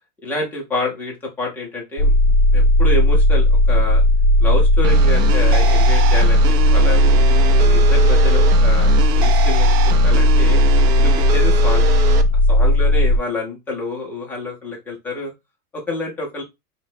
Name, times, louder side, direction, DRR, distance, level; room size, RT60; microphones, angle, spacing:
voice 1, 0.2-2.2 2.5-4.0 4.4-7.1 7.6-10.6 11.0-11.9 12.5-15.3 15.7-16.4, left 2 dB, 5° left, -1 dB, 0.3 m, -28 dB
sound 1, 2.0-13.2, left 1 dB, 30° left, 0.8 m, -14 dB
sound 2, 4.8-12.2, right 8 dB, 45° right, 0.6 m, -26 dB
4.9 x 2.1 x 3.6 m, 0.21 s
supercardioid pair, 145°, 47 cm